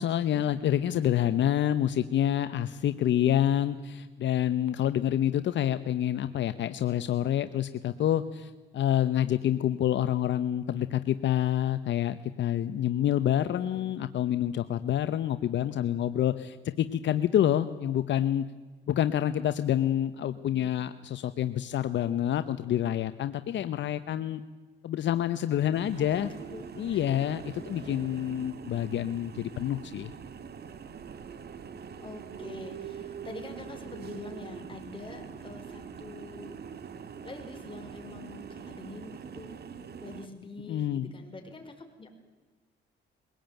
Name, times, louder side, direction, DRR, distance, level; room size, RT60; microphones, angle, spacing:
voice 1, 0.0-18.5 18.9-24.4 24.8-26.3 26.8-30.1 40.7-41.1, left 11 dB, 65° left, 11 dB, 0.9 m, -27 dB
voice 2, 13.5-13.9 26.0-27.2 27.8-28.0 28.6-28.9 32.0-36.6 37.2-39.6 40.0-42.2, left 3 dB, 25° left, 4 dB, 5.0 m, -45 dB
sound 1, 25.7-40.3, right 7 dB, 55° right, 1.7 m, -43 dB
22.5 x 18.0 x 9.1 m, 1.3 s
cardioid pair, 90°, 20 cm